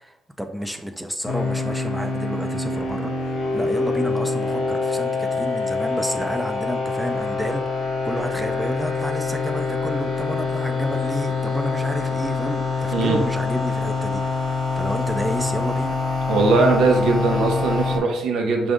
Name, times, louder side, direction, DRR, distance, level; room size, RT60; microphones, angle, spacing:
voice 1, 0.0-16.0, equal, 5° right, 5 dB, 0.4 m, -30 dB
sound 1, 1.3-18.0, left 4 dB, 85° left, 0.8 m, -25 dB
voice 2, 16.3-18.7, right 3 dB, 80° right, 2 dB, 0.8 m, -20 dB
4.8 x 2.6 x 3.5 m, 0.88 s
cardioid pair, 90°, 0 cm